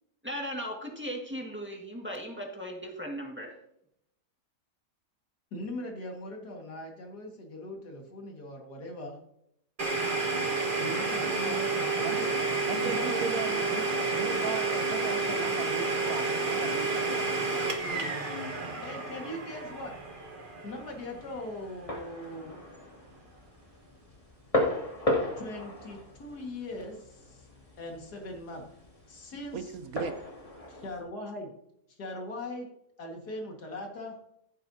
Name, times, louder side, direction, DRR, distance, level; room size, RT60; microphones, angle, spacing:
voice 1, 0.2-3.5, equal, 5° right, 0 dB, 1.5 m, -37 dB
voice 2, 5.5-9.2 10.7-11.9 12.8-14.6 15.1-15.5 18.8-19.9 20.6-22.6 25.4-27.5 27.8-28.6 29.1-29.7 30.7-31.5 31.9-32.7 33.0-34.2, left 1 dB, 75° left, 1 dB, 2.3 m, -40 dB
Domestic sounds home sounds, 9.8-21.4, right 3 dB, 35° right, 1.4 m, -30 dB
voice 3, 12.7-13.8 14.1-17.4 29.5-30.2, right 6 dB, 65° right, 9 dB, 1.1 m, -37 dB
sound 1, 19.5-31.0, left 1 dB, 20° left, 2.2 m, -37 dB
15.0 x 7.9 x 2.7 m, 0.76 s
omnidirectional pair, 1.8 m